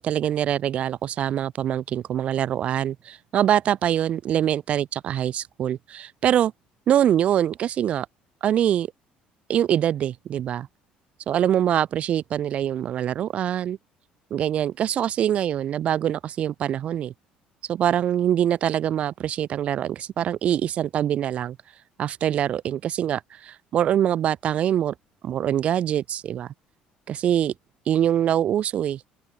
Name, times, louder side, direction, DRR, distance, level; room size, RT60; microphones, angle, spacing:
voice 1, 0.0-6.5 6.9-8.1 8.4-8.9 9.5-10.7 11.3-13.8 14.3-17.1 17.7-21.6 22.0-24.9 25.2-26.5 27.1-27.5 27.9-29.2, right 10 dB, 40° right, 0.7 m, -24 dB
open air
cardioid pair, 155°, 3 cm